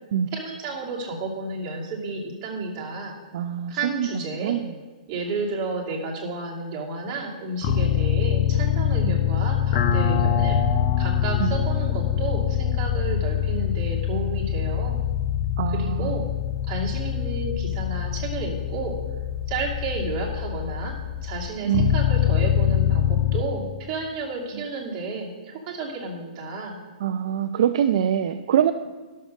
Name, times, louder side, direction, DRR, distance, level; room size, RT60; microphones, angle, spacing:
voice 1, 0.3-3.2 3.7-4.6 5.1-10.6 11.0-15.0 15.7-16.2 16.6-19.0 19.5-21.0 21.2-26.8, right 3 dB, 25° right, -3 dB, 2.5 m, -31 dB
voice 2, 3.3-4.1 4.4-4.6 9.0-9.1 11.4-11.5 15.6-16.1 21.6-21.9 27.0-28.7, right 9 dB, 55° right, 9 dB, 0.5 m, -24 dB
sound 1, 7.6-23.4, left 9 dB, 35° left, 0.6 m, -24 dB
11.5 x 6.6 x 6.4 m, 1.3 s
hypercardioid pair, 160°, 4 cm